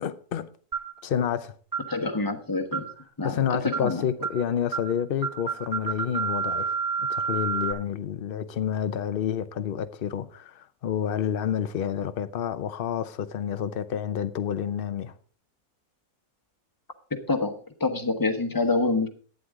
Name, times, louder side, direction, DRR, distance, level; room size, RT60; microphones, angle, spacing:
voice 1, 0.0-0.5 1.0-1.5 3.2-6.7 7.0-15.1, left 8 dB, 55° left, 0.6 m, -29 dB
sound 1, 0.7-1.0 1.7-1.9 2.7-3.0 3.7-3.9 4.2-4.4 4.7-4.9 5.2-7.7, right 6 dB, 15° right, 0.7 m, -29 dB
voice 2, 1.9-2.9 3.2-4.0 17.3-17.5 17.8-19.1, left 3 dB, 15° left, 0.9 m, -26 dB
12.0 x 9.4 x 3.6 m
omnidirectional pair, 1.6 m